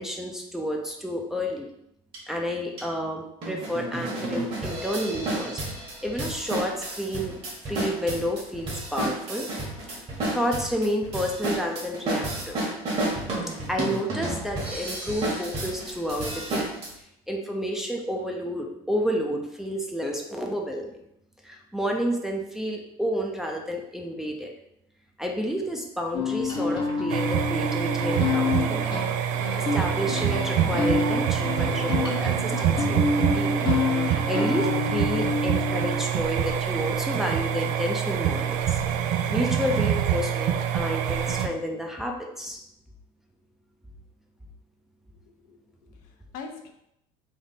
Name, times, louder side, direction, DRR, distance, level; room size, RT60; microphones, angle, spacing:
voice 1, 0.0-1.7 2.3-5.6 6.0-9.5 9.9-10.0 10.3-12.6 13.7-16.7 17.3-21.0 21.4-24.5 25.2-29.0 29.6-33.6 33.9-38.8 39.3-42.6, equal, 5° right, 0 dB, 0.6 m, -30 dB
sound 1, 2.1-2.2 2.8-2.9 3.4-16.9, right 1 dB, 40° right, 1.5 m, -31 dB
sound 2, 26.1-36.0, left 4 dB, 30° left, 0.8 m, -28 dB
sound 3, 27.1-41.5, right 9 dB, 65° right, 0.4 m, -26 dB
voice 2, 45.2-46.7, left 5 dB, 70° left, 3 dB, 0.7 m, -44 dB
3.5 x 2.6 x 4.1 m, 0.78 s
supercardioid pair, 105°, 15 cm